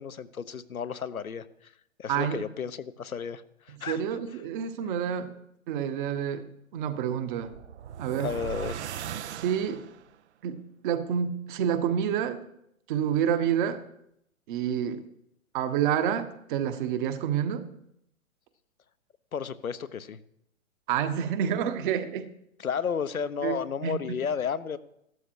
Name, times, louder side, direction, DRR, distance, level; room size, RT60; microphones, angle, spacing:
voice 1, 0.0-1.7 2.0-4.0 8.2-8.8 19.3-20.2 22.6-24.8, left 7 dB, 80° left, 13 dB, 1.2 m, -33 dB
voice 2, 2.1-2.4 3.9-5.3 5.7-6.5 6.7-7.5 8.0-8.3 9.3-9.8 10.4-12.4 12.9-13.8 14.5-15.0 15.5-17.7 20.9-22.3 23.4-23.5 23.8-23.9, right 8 dB, 35° right, 9 dB, 1.5 m, -28 dB
sound 1, 7.3-10.1, right 9 dB, 55° right, 0.8 m, -38 dB
15.5 x 12.5 x 4.8 m, 0.77 s
hypercardioid pair, 130°, 41 cm